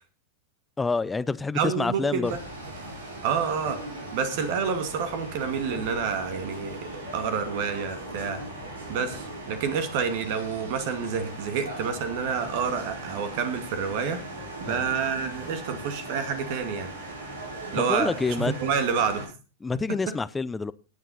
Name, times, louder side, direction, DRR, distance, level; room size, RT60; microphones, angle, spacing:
voice 1, 0.8-2.3 14.7-14.8 17.8-18.5 19.6-20.7, left 4 dB, 10° left, 18 dB, 0.7 m, -27 dB
voice 2, 1.5-2.4 3.2-3.8 4.1-8.4 8.9-14.2 14.6-16.9 17.7-19.3 19.7-20.1, right 6 dB, 50° right, 10 dB, 2.1 m, -28 dB
sound 1, 2.2-19.3, right 1 dB, 75° right, 5.0 m, -39 dB
18.0 x 9.0 x 4.1 m, 0.32 s
figure-of-eight pair, 95°, 0 cm